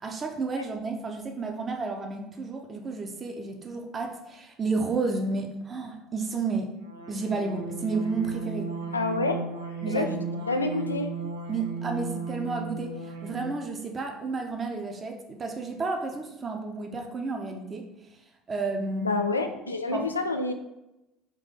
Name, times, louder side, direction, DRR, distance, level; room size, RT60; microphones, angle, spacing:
voice 1, 0.0-6.7 7.1-8.7 9.8-10.2 11.5-17.9 18.5-19.2 19.9-20.1, right 3 dB, 30° right, 3 dB, 0.7 m, -31 dB
sound 1, 6.8-13.7, right 4 dB, 80° right, 0.6 m, -35 dB
voice 2, 8.9-9.5 9.9-10.1 10.5-11.1 19.0-20.5, left 3 dB, 85° left, 6 dB, 0.3 m, -27 dB
3.8 x 2.6 x 4.0 m, 0.95 s
figure-of-eight pair, 65°, 0 cm